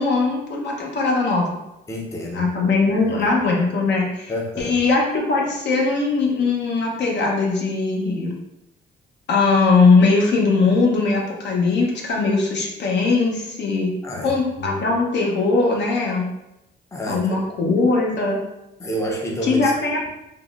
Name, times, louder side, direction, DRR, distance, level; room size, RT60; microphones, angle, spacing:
voice 1, 0.0-1.5 2.3-4.3 4.6-8.3 9.3-13.9 14.2-16.3 17.1-18.4 19.4-20.1, left 3 dB, 60° left, -1 dB, 0.7 m, -20 dB
voice 2, 1.9-3.3 4.3-4.8 14.0-14.8 16.9-17.4 18.8-19.7, equal, 15° left, -1 dB, 0.5 m, -29 dB
3.5 x 2.1 x 2.4 m, 0.88 s
cardioid pair, 90°, 20 cm